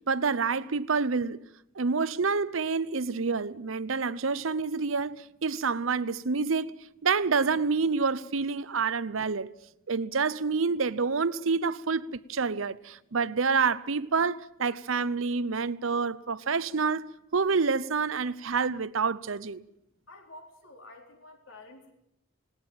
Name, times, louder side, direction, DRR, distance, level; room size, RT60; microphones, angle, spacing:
voice 1, 0.0-1.4 1.8-9.5 9.9-19.6, right 4 dB, 80° right, 0.8 m, -28 dB
voice 2, 20.1-21.9, left 2 dB, 75° left, 4.2 m, -50 dB
19.0 x 18.5 x 9.1 m
head